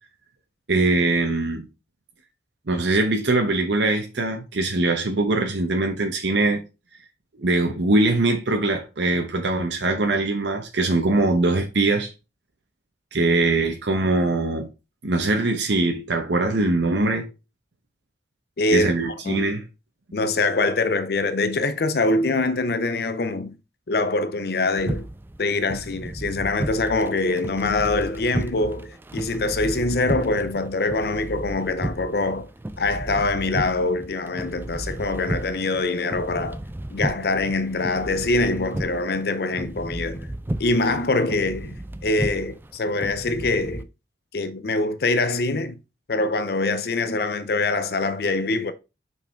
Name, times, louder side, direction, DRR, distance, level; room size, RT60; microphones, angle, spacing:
voice 1, 0.7-1.7 2.7-6.6 7.4-12.1 13.1-14.7 15.0-17.3 18.7-19.6, right 2 dB, 85° right, 0.9 m, -22 dB
voice 2, 18.6-19.5 20.1-23.6 23.9-25.1 25.4-32.5 32.8-36.6 36.9-40.3 40.6-43.9 44.3-45.8 46.1-48.7, left 2 dB, 60° left, 0.6 m, -24 dB
sound 1, 24.8-43.8, right 1 dB, 10° right, 0.4 m, -33 dB
5.5 x 4.8 x 4.4 m
head